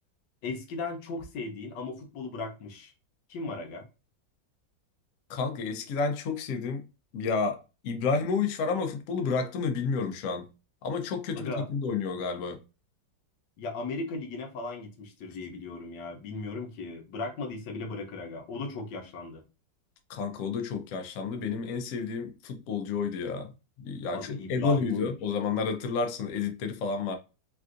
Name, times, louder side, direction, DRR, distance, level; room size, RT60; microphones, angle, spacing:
voice 1, 0.4-2.9 3.3-3.8 11.3-11.7 13.6-19.4 24.1-25.1, left 3 dB, 70° left, 1.3 m, -37 dB
voice 2, 5.3-6.8 7.1-10.5 10.8-12.6 20.1-23.5 23.8-27.1, left 5 dB, 90° left, 0.7 m, -30 dB
3.4 x 2.4 x 2.5 m
omnidirectional pair, 2.0 m